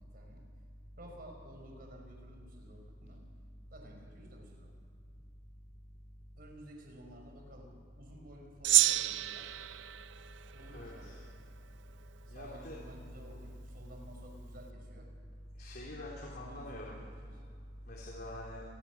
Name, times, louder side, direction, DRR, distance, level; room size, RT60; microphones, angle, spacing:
voice 1, 0.1-0.4 1.0-3.2 3.7-4.7 6.4-9.5 10.5-11.2 12.3-15.1 16.2-17.3, equal, 55° right, 2 dB, 5.2 m, -53 dB
Gong, 8.6-11.3, right 14 dB, 80° right, 0.5 m, -30 dB
voice 2, 10.7-11.2 12.3-12.8 15.6-17.0 17.9-18.6, left 1 dB, 55° left, -4 dB, 3.6 m, -44 dB
28.0 x 21.0 x 6.1 m, 2.2 s
head